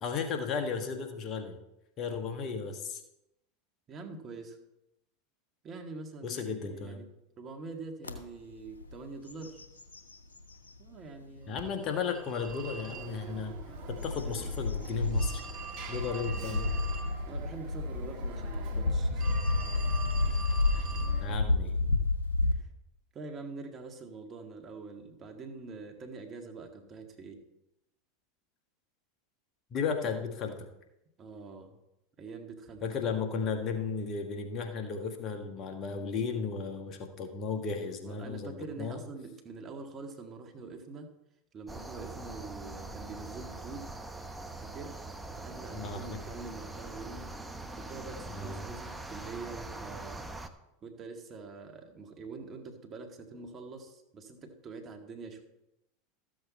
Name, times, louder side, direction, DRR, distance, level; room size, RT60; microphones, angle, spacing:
voice 1, 0.0-1.6 2.0-3.0 6.2-7.0 11.5-13.5 13.9-15.4 15.9-16.8 20.7-20.8 21.2-21.8 29.7-30.7 32.8-39.0 45.7-46.2 48.3-48.6, left 5 dB, 40° left, 4 dB, 1.6 m, -35 dB
voice 2, 3.9-4.6 5.6-7.1 7.4-9.6 10.8-11.7 17.3-19.4 20.9-21.3 22.5-22.7 23.1-27.4 31.2-31.8 32.2-33.0 38.0-41.1 41.5-43.9 44.6-45.1 45.3-47.3 47.8-50.3 50.8-55.4, right 3 dB, 35° right, 4 dB, 1.9 m, -45 dB
sound 1, 8.0-8.2 8.7-8.9 9.3-10.8 11.4-11.5 13.2-22.5, left 2 dB, 90° left, 1.1 m, -31 dB
Telephone, 11.6-21.4, right 4 dB, 50° right, 1.7 m, -42 dB
sound 2, 41.7-50.5, right 2 dB, 10° right, 0.9 m, -43 dB
13.5 x 7.9 x 4.2 m, 0.87 s
hypercardioid pair, 85°, 0 cm